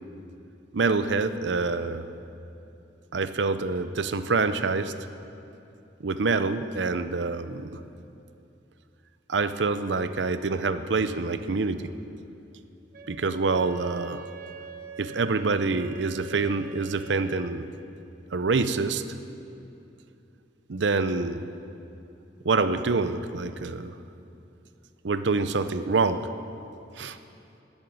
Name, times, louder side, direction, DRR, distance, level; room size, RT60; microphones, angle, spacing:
voice 1, 0.7-2.0 3.1-4.9 6.0-7.8 9.3-11.9 13.1-14.3 15.0-17.7 18.3-19.0 20.7-21.4 22.4-24.0 25.0-26.3 27.0-27.2, right 4 dB, 85° right, 11 dB, 0.6 m, -26 dB
Wind instrument woodwind instrument, 12.9-17.6, right 6 dB, 55° right, 1.1 m, -44 dB
13.0 x 9.0 x 9.1 m, 2.7 s
head